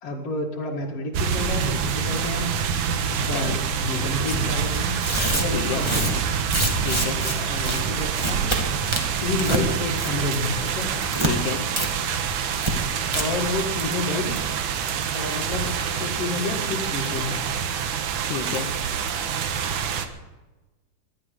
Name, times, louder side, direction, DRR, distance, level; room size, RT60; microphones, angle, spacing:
voice 1, 0.0-2.5 3.1-5.0 5.4-6.1 7.1-8.6 9.2-10.9 13.1-14.4 15.1-17.4, left 3 dB, 55° left, -3 dB, 2.9 m, -30 dB
sound 1, 1.1-20.1, right 7 dB, 90° right, 2.7 m, -26 dB
sound 2, 3.7-5.1 5.4-6.8 7.1-8.5 8.8-10.2, right 1 dB, 45° right, 6.5 m, -42 dB
Tearing, 4.2-4.4 4.9-7.3 7.6-7.8 8.1-8.6 8.9-9.6 9.9-10.3 10.6-11.3 11.7-11.9 12.1-12.2 12.6-12.7 13.0-13.2, right 1 dB, 10° right, 1.7 m, -26 dB
voice 2, 5.5-6.1 6.8-7.3 11.2-11.7 18.3-18.7, left 7 dB, 85° left, 5 dB, 2.6 m, -30 dB
21.0 x 12.0 x 5.1 m, 1.1 s
omnidirectional pair, 3.4 m